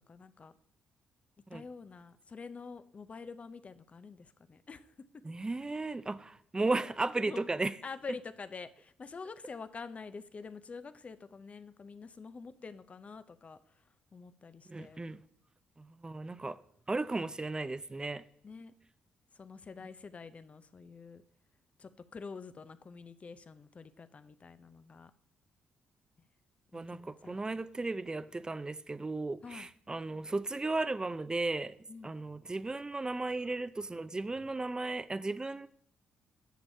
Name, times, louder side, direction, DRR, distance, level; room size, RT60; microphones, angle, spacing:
voice 1, 0.1-0.5 1.5-4.9 7.3-7.5 7.8-13.8 14.1-15.0 18.4-18.7 19.3-21.2 21.8-25.1 26.7-27.4 29.4-29.7 31.9-32.2, left 4 dB, 40° left, 13 dB, 0.5 m, -47 dB
voice 2, 5.2-7.7 14.7-15.2 15.8-16.6 16.9-18.2 26.7-31.7 32.0-35.7, right 2 dB, 20° right, 15 dB, 0.5 m, -35 dB
10.0 x 6.9 x 2.7 m, 0.66 s
hypercardioid pair, 50°, 3 cm